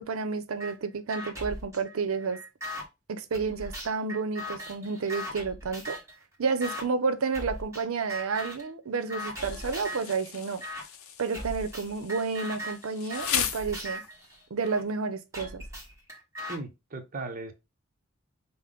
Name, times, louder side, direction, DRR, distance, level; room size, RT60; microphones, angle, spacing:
voice 1, 0.0-2.4 3.1-6.0 6.4-10.6 11.2-14.0 14.5-15.6, right 4 dB, 85° right, 0.6 m, -30 dB
sound 1, 0.6-0.7 1.1-2.8 3.3-6.2 6.6-6.8 7.3-7.8 8.1-8.7 9.1-10.1 10.6-10.8 11.3-14.8 15.3-16.6, equal, 15° right, 1.4 m, -39 dB
Insect, 9.4-14.3, left 8 dB, 90° left, 0.6 m, -36 dB
voice 2, 16.5-17.5, right 2 dB, 40° right, 0.7 m, -37 dB
5.5 x 2.1 x 3.7 m
head